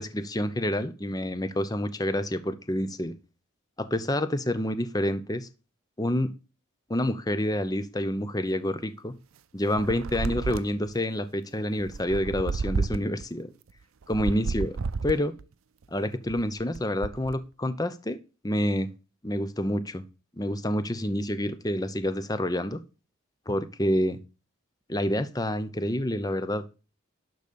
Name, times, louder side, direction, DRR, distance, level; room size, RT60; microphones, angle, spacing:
voice 1, 0.0-3.1 3.8-5.5 6.0-6.3 6.9-9.1 9.5-13.5 14.1-14.8 15.0-15.3 15.9-18.2 18.4-18.9 19.2-20.0 20.4-22.8 23.5-24.2 24.9-26.6, left 1 dB, 20° left, 0.8 m, -28 dB
sound 1, 9.8-10.9 11.8-13.2 14.0-15.4 16.1-17.4, right 4 dB, 85° right, 0.5 m, -31 dB
12.0 x 4.1 x 6.9 m
head